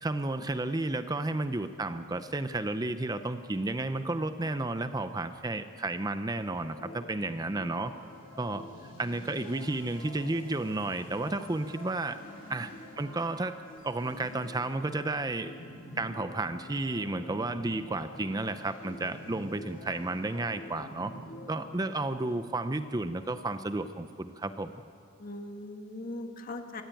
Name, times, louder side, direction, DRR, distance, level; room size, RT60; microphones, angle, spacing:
voice 1, 0.0-7.9 8.4-8.7 9.0-12.2 12.5-13.6 13.8-15.5 16.0-21.1 21.5-24.8, right 2 dB, 20° right, 10 dB, 0.5 m, -32 dB
sound 1, 6.3-22.3, equal, 85° left, 7.2 m, -47 dB
voice 2, 25.2-26.8, left 2 dB, 45° left, 5 dB, 1.9 m, -41 dB
24.0 x 15.0 x 9.1 m, 2.5 s
head